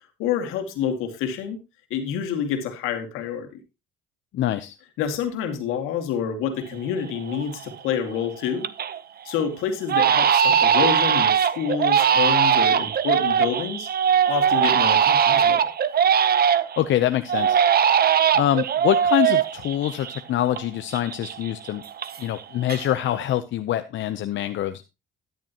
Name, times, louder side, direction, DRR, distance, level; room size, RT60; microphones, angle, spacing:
voice 1, 0.2-1.6 1.9-3.5 5.0-8.7 9.2-13.9 14.2-15.6, left 8 dB, 85° left, 6 dB, 2.3 m, -28 dB
voice 2, 4.3-4.7 16.8-17.6 18.3-21.8 22.2-24.8, left 12 dB, 65° left, 10 dB, 0.8 m, -25 dB
Crying sobbing, 6.7-6.8 7.3-7.7 8.1-9.0 9.3-9.4 9.9-16.8 17.3-20.6 20.9-22.4 22.7-23.2, right 8 dB, 50° right, 0.9 m, -20 dB
12.5 x 10.5 x 3.0 m, 0.27 s
supercardioid pair, 75°, 21 cm